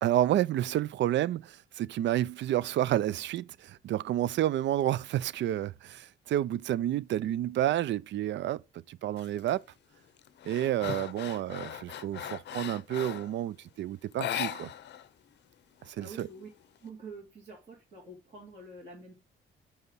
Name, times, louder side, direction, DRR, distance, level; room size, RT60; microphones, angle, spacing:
voice 1, 0.0-8.6 8.9-9.6 10.5-14.7 15.9-16.3, right 12 dB, 65° right, 0.4 m, -30 dB
sound 1, 9.2-9.5 9.9-13.4 14.1-15.1 15.3-15.4 15.8-16.8, left 10 dB, 60° left, 0.6 m, -38 dB
voice 2, 16.0-16.5 16.8-19.1, right 3 dB, 35° right, 2.9 m, -47 dB
9.5 x 3.5 x 5.4 m
wide cardioid pair, 170°, 20 cm